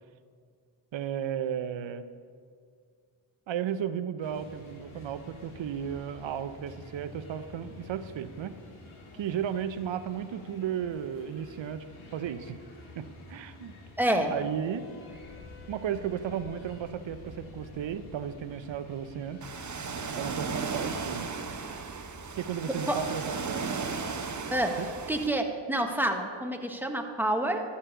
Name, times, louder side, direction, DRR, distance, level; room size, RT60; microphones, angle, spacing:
voice 1, 0.9-2.0 3.5-8.5 9.1-11.8 12.1-12.6 13.0-13.8 14.3-14.9 15.7-19.4 20.2-21.3 22.4-23.8 24.8-24.9, right 9 dB, 65° right, 12 dB, 0.8 m, -34 dB
sound 1, 4.2-21.6, left 2 dB, 80° left, 1.9 m, -49 dB
voice 2, 14.0-14.3 22.9-23.0 24.5-24.8 25.1-27.6, right 1 dB, 5° right, 3 dB, 1.4 m, -28 dB
Ocean, 19.4-25.3, right 4 dB, 35° right, 1.0 m, -35 dB
12.0 x 4.3 x 8.1 m, 2.1 s
supercardioid pair, 45°, 49 cm